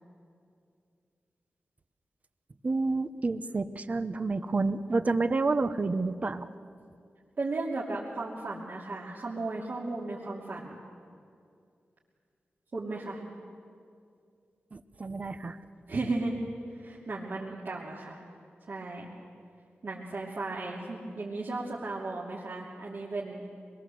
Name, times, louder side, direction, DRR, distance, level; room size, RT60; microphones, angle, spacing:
voice 1, 2.6-6.5 14.7-15.6, right 3 dB, 35° right, 12 dB, 0.9 m, -29 dB
voice 2, 7.4-10.8 12.7-13.2 15.9-16.3 16.7-18.2 18.7-19.1 19.8-23.4, right 2 dB, 55° right, -6 dB, 2.9 m, -35 dB
26.0 x 21.5 x 7.8 m, 2.4 s
wide cardioid pair, 130°, 4 cm